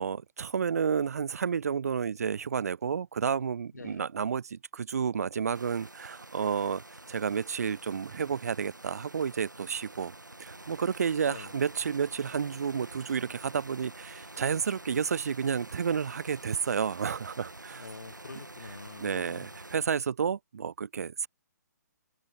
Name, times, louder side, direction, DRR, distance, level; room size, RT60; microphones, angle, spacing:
voice 1, 0.0-10.1 10.4-17.9 19.0-21.3, right 7 dB, 55° right, 0.4 m, -31 dB
voice 2, 3.7-4.0 11.3-11.5 17.8-19.5, left 4 dB, 65° left, 2.6 m, -45 dB
sound 1, 5.5-19.8, right 2 dB, 85° right, 1.9 m, -48 dB
figure-of-eight pair, 135°, 10 cm